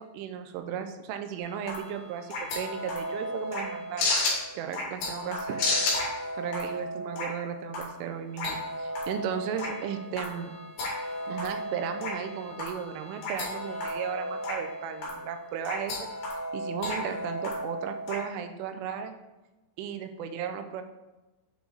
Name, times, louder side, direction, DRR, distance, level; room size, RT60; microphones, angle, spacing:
voice 1, 0.0-4.1 4.5-6.0 6.4-10.5 11.3-16.1 16.5-19.2 19.8-20.8, right 8 dB, 85° right, 8 dB, 3.1 m, -35 dB
sound 1, 1.4-18.2, left 1 dB, 55° left, 3.4 m, -33 dB
8.1 x 4.9 x 3.9 m, 1.1 s
omnidirectional pair, 5.5 m